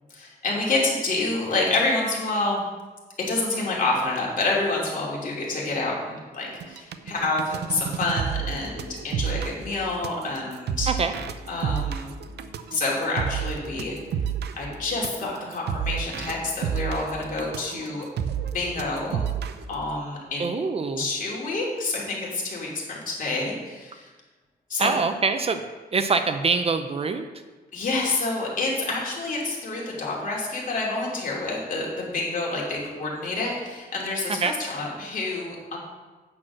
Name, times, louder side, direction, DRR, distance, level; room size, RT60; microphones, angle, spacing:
voice 1, 0.1-2.6 3.3-10.9 11.5-12.1 12.7-14.0 14.5-18.1 18.4-19.2 19.7-20.5 21.0-24.1 24.7-25.0 27.7-35.8, left 2 dB, 55° left, -3 dB, 2.7 m, -28 dB
sound 1, 6.5-19.8, right 8 dB, 85° right, 0.6 m, -30 dB
voice 2, 20.4-21.1 24.8-25.7 25.9-27.2 34.4-34.5, right 4 dB, 35° right, 8 dB, 0.5 m, -24 dB
9.0 x 6.1 x 6.1 m, 1.3 s
wide cardioid pair, 160°, 17 cm